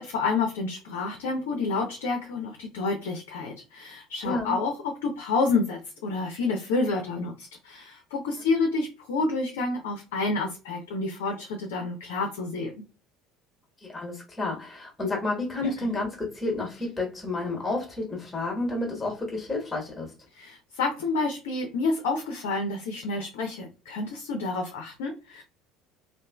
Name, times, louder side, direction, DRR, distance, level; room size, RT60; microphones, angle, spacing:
voice 1, 0.0-12.7 15.6-15.9 20.3-25.4, left 3 dB, 65° left, 0.5 m, -29 dB
voice 2, 4.2-4.6 13.8-20.1, left 2 dB, 10° left, 1.2 m, -30 dB
3.0 x 2.5 x 2.2 m
figure-of-eight pair, 60°, 0 cm